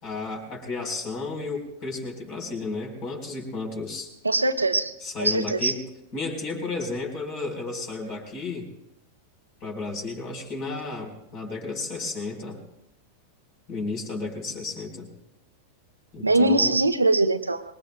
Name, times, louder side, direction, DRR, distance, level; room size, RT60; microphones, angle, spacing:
voice 1, 0.0-4.1 5.0-5.8 6.1-8.7 9.6-12.6 13.7-15.1 16.1-16.8, left 3 dB, 40° left, 2 dB, 4.1 m, -33 dB
voice 2, 4.2-4.9 5.2-5.7 16.2-17.6, right 2 dB, 80° right, 10 dB, 0.9 m, -22 dB
25.0 x 21.5 x 2.2 m, 0.86 s
figure-of-eight pair, 90°, 0 cm